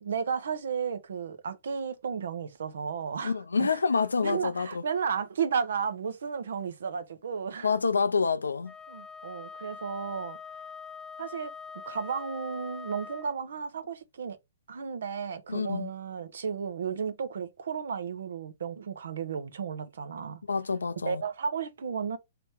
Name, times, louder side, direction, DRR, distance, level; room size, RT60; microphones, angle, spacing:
voice 1, 0.0-3.8 4.2-7.7 8.9-10.4 11.2-11.5 11.9-14.4 14.7-20.4 21.0-22.2, right 6 dB, 70° right, 0.8 m, -33 dB
voice 2, 3.2-4.8 7.6-8.7 15.5-15.9 20.5-21.2, left 5 dB, 90° left, 0.5 m, -27 dB
Wind instrument woodwind instrument, 8.6-13.4, left 5 dB, 5° left, 0.5 m, -43 dB
3.3 x 3.0 x 4.3 m
hypercardioid pair, 125°, 0 cm